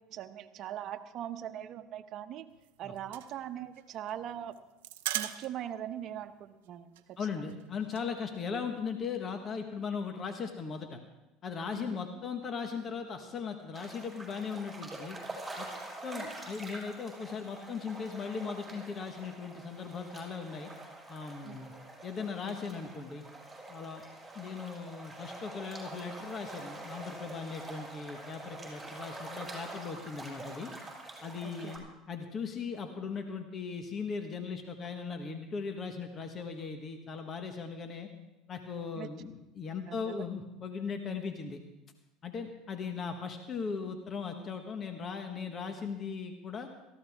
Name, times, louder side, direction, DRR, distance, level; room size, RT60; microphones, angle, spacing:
voice 1, 0.1-2.5 2.8-4.6 5.1-7.5 11.7-12.0 21.4-21.6 31.4-31.7 38.9-39.1 39.9-40.1, right 10 dB, 50° right, 8 dB, 1.0 m, -41 dB
sound 1, 2.5-5.8 6.1-6.2 6.5-6.7 7.0-8.1, right 14 dB, 90° right, 0.8 m, -39 dB
voice 2, 7.2-11.0 11.4-15.2 15.6-15.7 16.0-20.7 21.1-21.7 22.0-23.2 23.7-24.0 24.3-30.7 31.2-38.1 38.5-41.6 42.2-46.7, left 5 dB, 35° left, 5 dB, 1.4 m, -38 dB
sound 2, 13.7-31.8, right 2 dB, 10° right, 5.7 m, -46 dB
17.5 x 14.5 x 3.6 m, 0.96 s
supercardioid pair, 105°, 0 cm